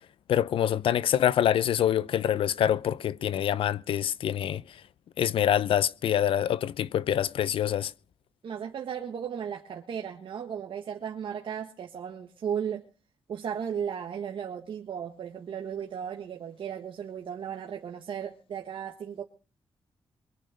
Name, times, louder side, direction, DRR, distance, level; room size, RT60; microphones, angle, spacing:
voice 1, 0.3-4.6 5.2-7.9, left 10 dB, 90° left, 0.6 m, -25 dB
voice 2, 8.4-12.9 13.3-19.2, right 8 dB, 70° right, 1.6 m, -35 dB
23.0 x 8.7 x 5.0 m
wide cardioid pair, 115°, 9 cm